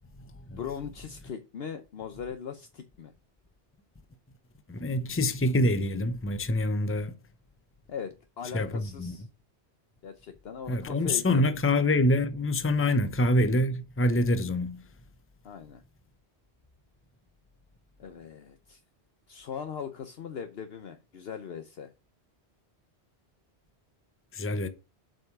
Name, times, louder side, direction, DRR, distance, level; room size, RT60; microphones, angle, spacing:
voice 1, 0.6-3.1 7.9-9.3 10.0-11.2 12.8-13.0 15.4-15.8 18.0-18.8 19.3-21.9, left 7 dB, 65° left, 1.0 m, -39 dB
voice 2, 4.7-7.1 8.5-9.1 10.7-14.8 24.3-24.7, left 1 dB, 15° left, 0.7 m, -26 dB
7.6 x 5.5 x 5.8 m
omnidirectional pair, 1.1 m